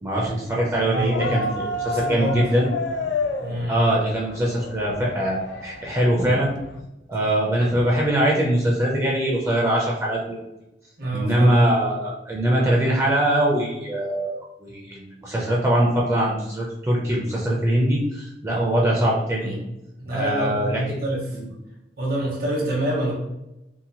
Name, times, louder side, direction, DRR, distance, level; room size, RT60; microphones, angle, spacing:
voice 1, 0.0-2.7 3.7-6.5 7.1-10.4 11.1-19.6 20.1-20.8 21.4-21.5, right 1 dB, 15° right, -3 dB, 0.4 m, -22 dB
sound 1, 0.9-6.8, left 2 dB, 85° left, 0.3 m, -30 dB
voice 2, 0.9-1.4 1.9-2.5 3.4-3.7 7.2-7.3 11.0-11.7 19.4-19.5 20.0-21.2 22.0-23.1, right 1 dB, 60° right, -4 dB, 0.8 m, -27 dB
2.8 x 2.1 x 2.6 m, 0.94 s
head